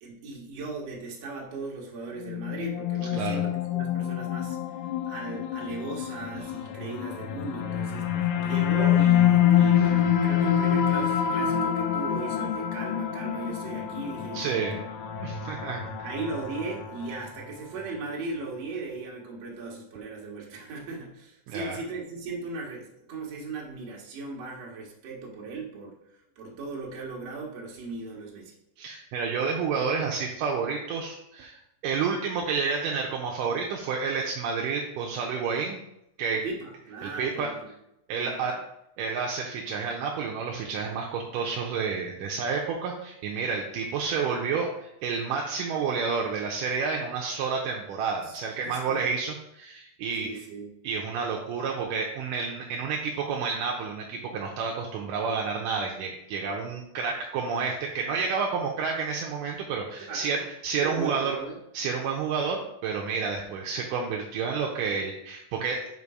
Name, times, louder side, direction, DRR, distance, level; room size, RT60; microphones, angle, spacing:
voice 1, 0.0-4.6 5.1-8.0 8.4-14.9 16.0-25.9 26.4-28.5 36.3-37.7 38.2-38.5 48.2-49.1 50.2-50.8 60.0-60.4 60.8-61.6, right 3 dB, 55° right, -2 dB, 2.3 m, -37 dB
sound 1, 2.2-17.5, left 9 dB, 80° left, 1.9 m, -26 dB
voice 2, 14.3-14.8 15.2-15.8 21.5-21.8 28.8-35.8 36.2-36.4 37.0-37.5 38.1-38.5 39.0-50.3 50.8-60.4 60.6-61.4 61.7-65.9, right 5 dB, 80° right, 0 dB, 2.2 m, -30 dB
5.5 x 5.2 x 4.8 m, 0.81 s
omnidirectional pair, 4.0 m